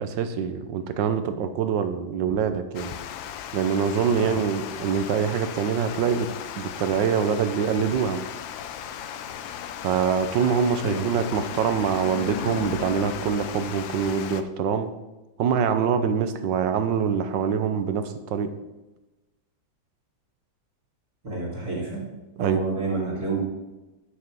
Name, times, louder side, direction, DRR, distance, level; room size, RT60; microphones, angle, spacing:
voice 1, 0.0-2.9 3.5-6.3 6.6-8.2 9.8-14.9 15.4-18.5 22.4-22.6, right 7 dB, 75° right, 9 dB, 1.4 m, -24 dB
Water, 2.7-14.4, left 9 dB, 85° left, 1.4 m, -36 dB
voice 2, 21.2-22.1 22.4-23.4, right 3 dB, 50° right, -5 dB, 2.7 m, -29 dB
7.3 x 6.6 x 5.9 m, 1.0 s
omnidirectional pair, 2.0 m